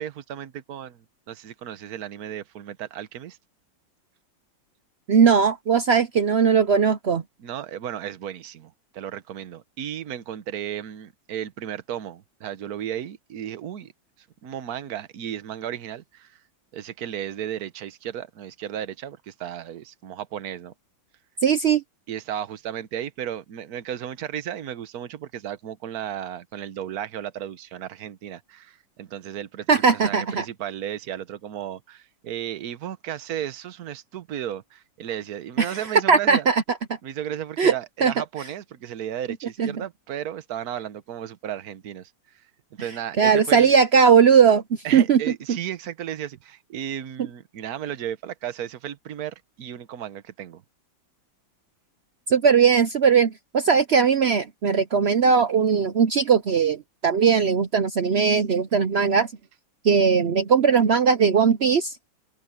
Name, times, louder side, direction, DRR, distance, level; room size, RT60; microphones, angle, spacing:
voice 1, 0.0-3.4 7.4-13.9 14.4-16.4 16.7-20.7 22.1-36.5 37.0-42.4 42.7-43.7 44.8-50.6, right 10 dB, 55° right, 1.4 m, -34 dB
voice 2, 5.1-7.2 21.4-21.8 29.7-30.5 35.6-35.8 36.1-36.6 37.6-37.7 38.0-38.1 39.6-39.7 43.2-44.6 44.9-45.2 52.3-59.3 59.8-61.9, right 6 dB, 75° right, 0.5 m, -19 dB
open air
omnidirectional pair, 2.1 m